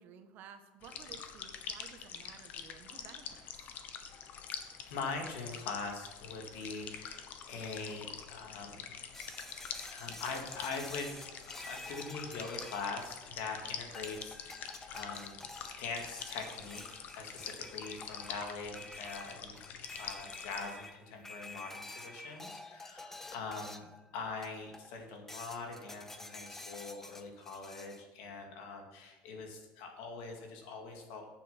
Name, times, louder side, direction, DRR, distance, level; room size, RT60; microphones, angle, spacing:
voice 1, 0.0-3.7, right 7 dB, 55° right, 7 dB, 1.2 m, -54 dB
sound 1, 0.8-20.7, left 7 dB, 50° left, 1.1 m, -46 dB
voice 2, 4.9-8.9 9.9-11.1 11.6-15.4 15.8-23.8 24.1-31.3, left 4 dB, 75° left, 2 dB, 2.4 m, -43 dB
sound 2, 9.1-13.5 13.9-24.0 24.4-24.9 25.3-28.0, left 2 dB, 10° left, 0.7 m, -49 dB
8.7 x 7.4 x 5.9 m, 1.1 s
supercardioid pair, 120°, 4 cm